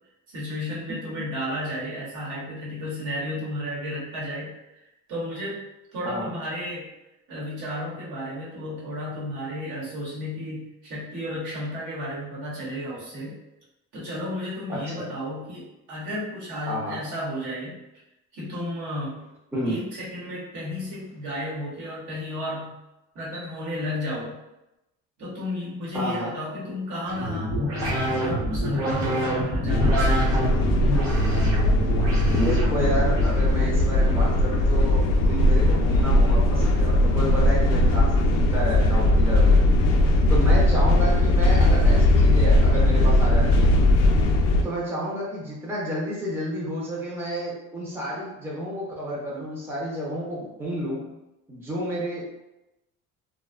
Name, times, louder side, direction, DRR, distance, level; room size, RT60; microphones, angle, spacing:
voice 1, 0.3-5.6 5.9-6.9 7.3-13.4 13.9-17.8 18.3-19.2 19.6-22.8 23.1-24.3 25.2-30.6, equal, 70° right, -6 dB, 1.1 m, -33 dB
voice 2, 14.7-15.0 16.7-17.0 19.5-19.8 25.9-26.3 32.3-39.6 40.3-43.8 44.6-51.0 51.5-52.5, equal, 5° right, -6 dB, 0.5 m, -30 dB
sound 1, 27.1-33.4, equal, 45° right, 1.0 m, -27 dB
sound 2, 29.7-44.6, left 1 dB, 55° left, 0.4 m, -19 dB
2.5 x 2.2 x 2.3 m, 0.94 s
cardioid pair, 140°, 32 cm